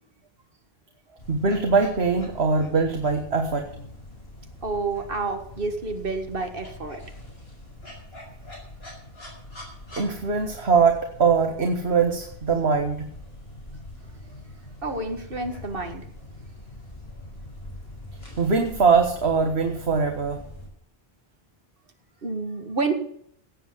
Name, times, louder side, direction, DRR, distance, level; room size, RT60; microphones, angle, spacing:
sound 1, 1.2-20.7, left 1 dB, 80° left, 5.7 m, -43 dB
voice 1, 1.3-3.7 10.0-13.1 18.4-20.4, right 5 dB, 90° right, 4 dB, 1.7 m, -22 dB
voice 2, 4.6-7.0 14.8-16.1 22.2-22.9, right 3 dB, 60° right, 6 dB, 2.1 m, -29 dB
17.5 x 7.6 x 7.2 m, 0.66 s
omnidirectional pair, 1.0 m